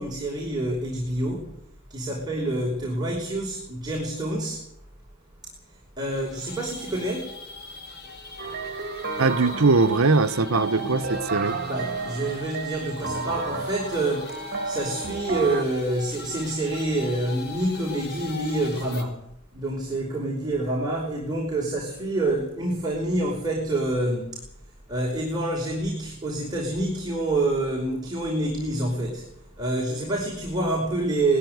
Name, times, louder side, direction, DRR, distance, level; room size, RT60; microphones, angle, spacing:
voice 1, 0.0-1.5 1.9-4.6 6.0-7.4 11.6-14.4 14.6-19.2 19.5-24.4 24.9-29.3 29.6-31.4, right 2 dB, 20° right, 5.4 m, -27 dB
sound 1, 6.1-19.0, left 4 dB, 50° left, 4.2 m, -42 dB
sound 2, 8.4-15.6, right 3 dB, 45° right, 2.5 m, -32 dB
voice 2, 9.2-11.6, right 3 dB, 80° right, 1.0 m, -21 dB
20.5 x 15.5 x 9.5 m
head